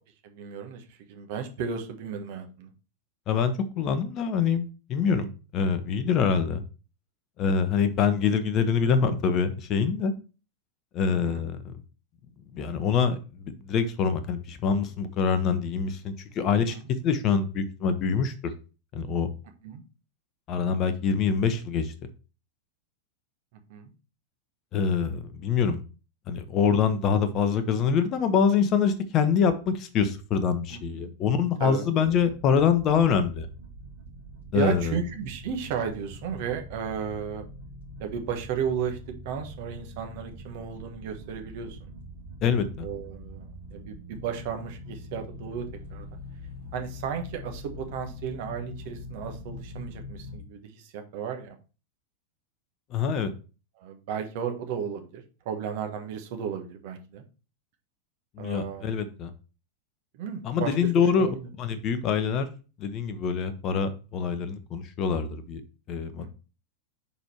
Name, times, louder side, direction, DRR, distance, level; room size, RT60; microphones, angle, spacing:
voice 1, 0.2-2.7 11.0-11.4 16.7-16.9 19.6-19.8 23.7-23.9 30.7-31.1 31.6-31.8 34.5-37.4 38.0-39.0 39.2-41.9 42.8-45.6 45.9-46.2 46.7-51.5 53.8-57.2 58.4-58.9 60.1-60.8 61.2-61.5 66.2-66.3, right 7 dB, 50° right, 5 dB, 1.2 m, -34 dB
voice 2, 3.3-6.6 7.4-10.1 10.9-11.7 12.5-18.5 18.9-19.3 20.5-21.9 24.7-25.8 26.3-33.5 34.5-34.9 42.4-42.9 52.9-53.3 58.4-59.3 60.4-61.3 61.6-62.5 62.8-65.6 65.9-66.3, left 6 dB, 35° left, 10 dB, 0.9 m, -25 dB
sound 1, 32.0-50.4, left 1 dB, 70° right, 2.5 m, -43 dB
5.3 x 4.5 x 4.4 m, 0.34 s
figure-of-eight pair, 90°, 0 cm